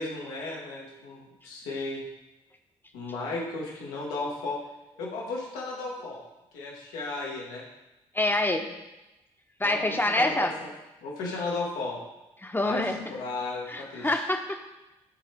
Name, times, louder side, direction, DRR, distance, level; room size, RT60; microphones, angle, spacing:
voice 1, 0.0-2.0 2.9-4.6 5.0-6.2 6.5-7.6 9.6-10.7 11.0-12.0 12.6-12.8 13.1-14.2, left 3 dB, 75° left, -3 dB, 1.7 m, -34 dB
voice 2, 8.1-8.7 9.6-10.5 12.4-13.0 13.7-14.6, left 1 dB, 15° left, 5 dB, 1.1 m, -26 dB
12.5 x 4.4 x 3.5 m, 1.0 s
hypercardioid pair, 45°, 14 cm